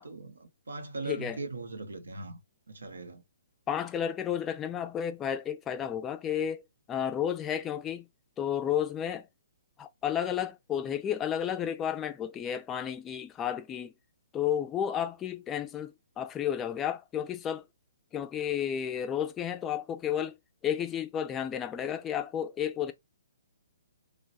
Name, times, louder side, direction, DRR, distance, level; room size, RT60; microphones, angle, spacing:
voice 1, 0.0-2.4 2.7-3.2, right 3 dB, 75° right, 0.6 m, -39 dB
voice 2, 1.1-1.4 3.7-6.6 6.9-8.1 8.4-9.3 9.8-13.9 14.3-17.6 18.1-20.3 20.6-22.9, left 9 dB, 20° left, 0.4 m, -32 dB
3.1 x 2.2 x 2.7 m
figure-of-eight pair, 130°, 0 cm